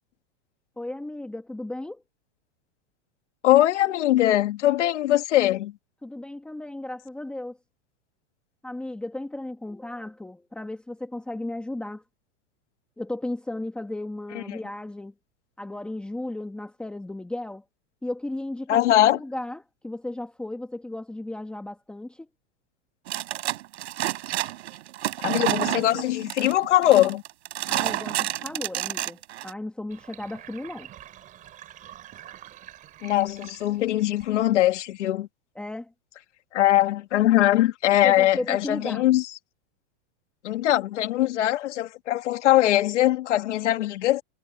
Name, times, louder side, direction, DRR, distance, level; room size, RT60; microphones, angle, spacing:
voice 1, 0.8-2.0 6.0-7.6 8.6-12.0 13.0-15.1 15.6-17.6 18.0-18.8 19.1-22.3 27.7-30.9 35.5-35.9 38.0-39.1, left 1 dB, 5° left, 1.4 m, -35 dB
voice 2, 3.4-5.7 18.7-19.2 25.2-27.2 33.0-35.3 36.5-39.3 40.4-44.2, left 14 dB, 85° left, 2.5 m, -21 dB
sound 1, 23.1-29.5, right 15 dB, 65° right, 6.4 m, -29 dB
Sink (filling or washing), 29.9-34.8, right 12 dB, 25° right, 4.4 m, -47 dB
supercardioid pair, 170°, 35 cm